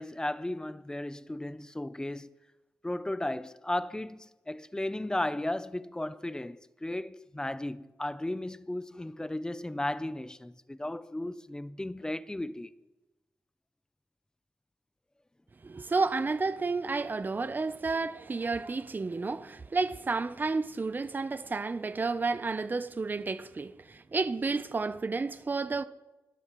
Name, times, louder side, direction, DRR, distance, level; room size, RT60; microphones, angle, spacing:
voice 1, 0.0-2.3 2.8-12.7, left 1 dB, 10° left, 0.6 m, -35 dB
voice 2, 15.6-25.8, right 3 dB, 30° right, 0.7 m, -31 dB
26.0 x 12.5 x 3.1 m
cardioid pair, 90°, 6 cm